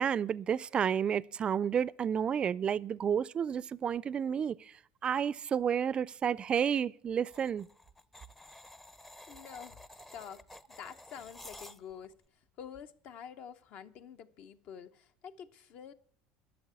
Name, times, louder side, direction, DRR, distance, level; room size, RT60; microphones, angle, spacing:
voice 1, 0.0-4.7 5.0-7.7, right 8 dB, 35° right, 0.4 m, -31 dB
sound 1, 7.3-12.1, left 1 dB, 10° left, 0.6 m, -52 dB
voice 2, 9.3-9.8 10.1-10.4 10.8-12.1 12.6-15.9, left 8 dB, 55° left, 0.9 m, -47 dB
12.0 x 6.7 x 9.4 m
supercardioid pair, 105°, 3 cm